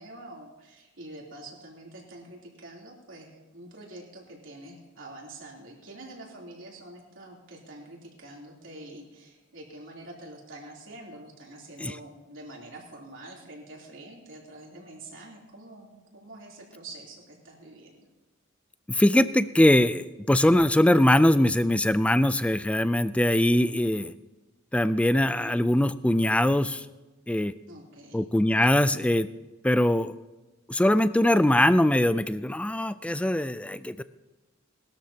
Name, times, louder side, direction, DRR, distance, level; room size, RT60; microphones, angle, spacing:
voice 1, 0.0-18.1 27.7-28.3, right 1 dB, 70° right, -2 dB, 3.3 m, -46 dB
voice 2, 18.9-24.1 24.7-26.8 27.3-27.5 28.1-29.3 29.6-30.1 30.7-34.0, left 1 dB, 5° left, 14 dB, 0.3 m, -22 dB
20.5 x 13.0 x 2.9 m, 1.1 s
head